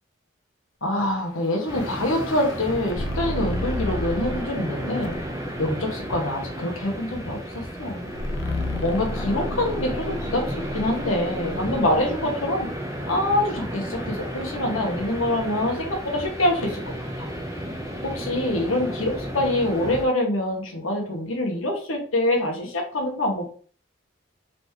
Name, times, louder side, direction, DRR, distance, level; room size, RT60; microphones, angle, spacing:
voice 1, 0.8-5.2 5.6-7.4 7.8-8.1 8.8-12.7 13.1-16.8 17.2-17.3 18.0-23.5, left 1 dB, 85° left, 2 dB, 1.2 m, -25 dB
sound 1, 1.2-4.6 5.0-5.6 8.1-12.2, left 1 dB, 65° left, 0.5 m, -33 dB
sound 2, 1.7-20.0, equal, 15° right, 0.8 m, -33 dB
4.0 x 3.4 x 3.1 m, 0.43 s
head